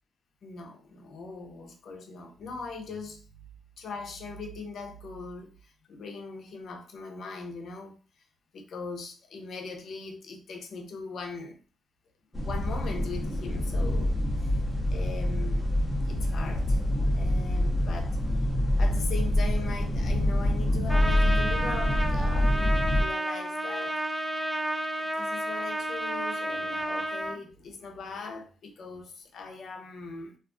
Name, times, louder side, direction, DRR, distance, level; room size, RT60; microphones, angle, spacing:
voice 1, 0.4-3.2 3.8-8.0 8.5-11.6 12.3-14.1 14.4-14.5 14.9-15.7 16.0-16.8 17.1-18.2 18.8-24.0 25.2-30.4, left 4 dB, 60° left, 0.5 m, -40 dB
sound 1, 12.3-23.0, left 1 dB, 15° left, 0.7 m, -26 dB
Trumpet, 20.9-27.4, right 1 dB, 10° right, 0.3 m, -31 dB
2.4 x 2.3 x 2.3 m
cardioid pair, 90°, 0 cm